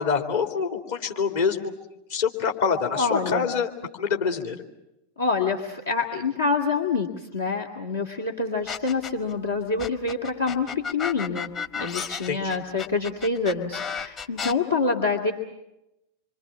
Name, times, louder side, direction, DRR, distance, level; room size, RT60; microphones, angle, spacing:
voice 1, 0.0-1.7 2.1-4.6 12.3-12.5, left 6 dB, 55° left, 3 dB, 3.0 m, -26 dB
voice 2, 2.9-3.5 5.2-15.3, left 4 dB, 75° left, 1 dB, 2.0 m, -26 dB
sound 1, 8.7-9.3 9.8-14.5, left 6 dB, 30° left, 1.4 m, -32 dB
27.0 x 25.0 x 7.4 m, 0.89 s
figure-of-eight pair, 90°, 0 cm